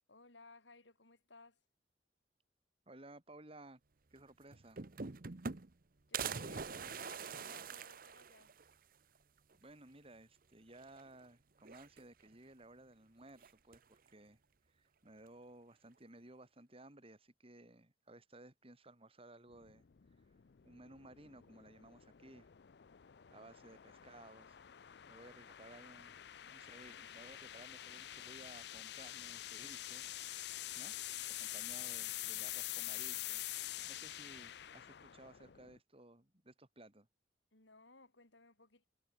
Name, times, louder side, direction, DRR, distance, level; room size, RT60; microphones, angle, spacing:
voice 1, 0.1-1.6 6.1-8.5 30.8-31.0 37.5-38.9, left 3 dB, 85° left, 5.3 m, -60 dB
voice 2, 2.9-3.8 4.1-4.8 9.5-14.4 14.7-19.9 20.6-22.5 23.3-24.6 25.1-26.2 26.5-30.1 30.4-30.9 31.2-33.5 33.9-37.1, right 2 dB, 30° right, 3.5 m, -58 dB
sound 1, 4.2-4.3 4.5-5.8 6.1-8.7 9.2-9.3 9.5-9.6 10.8-11.2 11.6-12.3 13.4-14.0, right 5 dB, 50° right, 1.0 m, -44 dB
sound 2, 19.5-35.8, left 14 dB, 65° left, 0.5 m, -46 dB
head